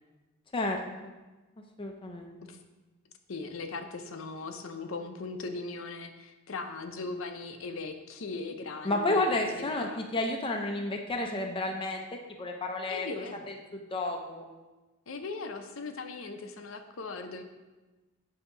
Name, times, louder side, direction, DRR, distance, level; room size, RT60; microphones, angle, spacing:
voice 1, 0.5-1.1 1.8-2.4 8.8-12.0 12.4-13.1 13.5-14.4, left 2 dB, 25° left, 2 dB, 0.5 m, -31 dB
voice 2, 3.3-10.0 12.9-13.5 15.1-17.4, left 3 dB, 70° left, 7 dB, 0.6 m, -39 dB
8.1 x 2.8 x 5.5 m, 1.2 s
head